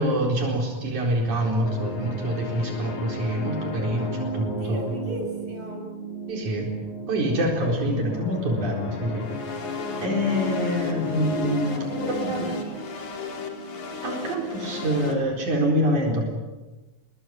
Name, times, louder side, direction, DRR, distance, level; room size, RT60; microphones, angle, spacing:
voice 1, 0.0-5.0 6.3-6.7 7.1-9.6 10.0-12.5 14.0-16.3, equal, 85° right, 1 dB, 5.8 m, -26 dB
sound 1, 1.6-15.1, left 2 dB, 80° left, 4.9 m, -33 dB
voice 2, 4.2-5.9 11.7-12.9, right 1 dB, 45° right, 2 dB, 7.6 m, -37 dB
28.5 x 22.5 x 9.4 m, 1.1 s
omnidirectional pair, 3.3 m